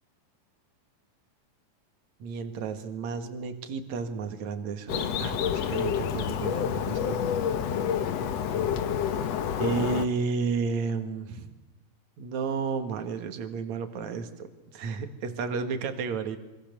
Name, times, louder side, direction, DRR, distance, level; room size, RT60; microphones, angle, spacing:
voice 1, 2.2-7.3 9.6-11.5 12.2-14.5 14.7-16.4, right 5 dB, 55° right, 7 dB, 3.2 m, -32 dB
Bird, 4.9-10.1, left 8 dB, 60° left, 1.9 m, -28 dB
26.5 x 25.0 x 7.0 m, 1.0 s
omnidirectional pair, 4.0 m